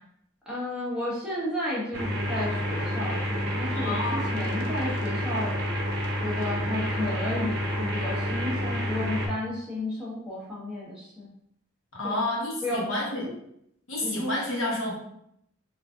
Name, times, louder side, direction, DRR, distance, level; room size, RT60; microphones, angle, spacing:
voice 1, 0.5-5.6 6.2-11.3 12.0-12.2 12.6-12.9 13.2-13.3 14.0-14.4, left 1 dB, 5° right, -8 dB, 0.9 m, -32 dB
sound 1, 1.9-9.3, equal, 50° right, 0.6 m, -29 dB
voice 2, 3.7-4.2 11.9-13.2 13.9-15.0, left 1 dB, 85° left, -3 dB, 1.0 m, -29 dB
3.9 x 2.5 x 2.4 m, 0.75 s
head